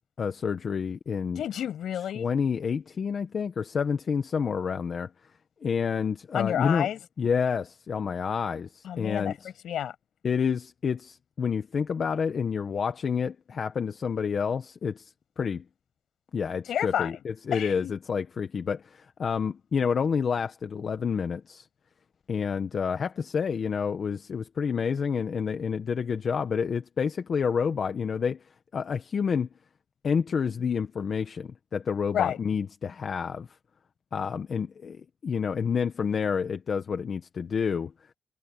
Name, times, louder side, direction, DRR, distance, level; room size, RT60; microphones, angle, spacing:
voice 1, 0.2-1.4 2.1-5.1 5.6-6.9 7.2-9.3 10.2-15.6 16.3-21.6 22.3-28.4 28.7-29.5 30.0-33.5 34.1-37.9, left 6 dB, 40° left, 1.3 m, -29 dB
voice 2, 1.4-2.3 6.3-7.0 8.8-9.9 16.7-17.2 17.5-17.9 32.1-32.4, left 10 dB, 65° left, 7.9 m, -30 dB
cardioid pair, 140°, 0 cm